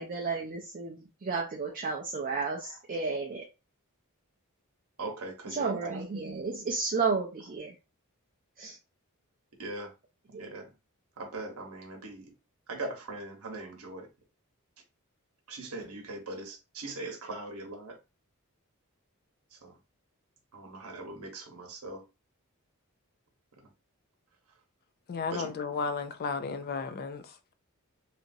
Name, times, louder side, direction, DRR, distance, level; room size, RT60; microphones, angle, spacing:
voice 1, 0.0-3.4 5.5-7.7 8.6-8.8 10.3-10.4, right 4 dB, 40° right, 0.4 m, -32 dB
voice 2, 5.0-6.0 9.6-9.9 10.4-10.7 11.2-12.3 12.7-14.1 15.5-18.0 19.5-19.8 20.5-22.0 25.3-25.5, right 2 dB, 80° right, 1.0 m, -40 dB
voice 3, 25.1-27.5, left 5 dB, 45° left, 0.3 m, -34 dB
2.9 x 2.5 x 2.6 m
head